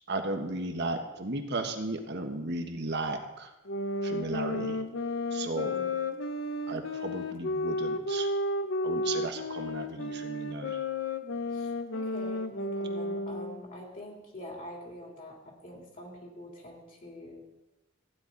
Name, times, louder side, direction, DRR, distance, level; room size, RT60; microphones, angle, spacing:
voice 1, 0.1-3.5 4.0-4.8 5.3-5.7 6.7-8.3 8.8-10.8, right 2 dB, 55° right, 4 dB, 1.4 m, -35 dB
sound 1, 3.7-13.6, left 2 dB, 65° left, 0.8 m, -32 dB
voice 2, 5.6-6.0 11.5-17.4, equal, 45° left, -2 dB, 3.4 m, -45 dB
15.5 x 10.5 x 4.0 m, 1.0 s
head